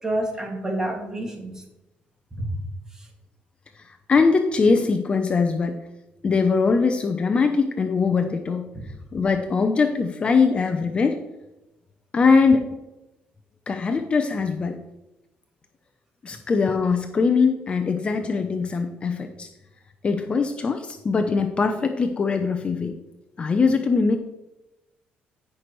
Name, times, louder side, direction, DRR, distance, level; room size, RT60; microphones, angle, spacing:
voice 1, 0.0-1.6 2.3-2.5 2.9-3.1 8.7-8.8 16.3-16.4, right 1 dB, 15° right, 1 dB, 2.2 m, -29 dB
voice 2, 3.8-5.8 6.2-8.7 9.1-11.2 12.1-12.8 13.7-14.8 16.2-19.5 20.0-22.9 23.4-24.2, left 4 dB, 30° left, 6 dB, 0.7 m, -21 dB
14.0 x 6.1 x 3.2 m, 0.98 s
cardioid pair, 120°, 4 cm